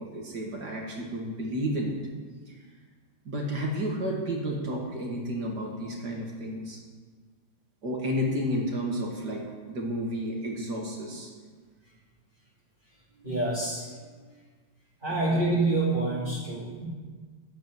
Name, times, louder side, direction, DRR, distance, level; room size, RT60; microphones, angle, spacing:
voice 1, 0.0-1.9 2.5-2.6 3.3-6.8 7.8-9.4 9.7-11.3 15.3-15.4, equal, 50° right, -1 dB, 2.4 m, -31 dB
voice 2, 13.2-13.8 15.0-16.8, right 2 dB, 25° right, -8 dB, 2.4 m, -27 dB
10.5 x 9.2 x 7.8 m, 1.5 s
omnidirectional pair, 2.3 m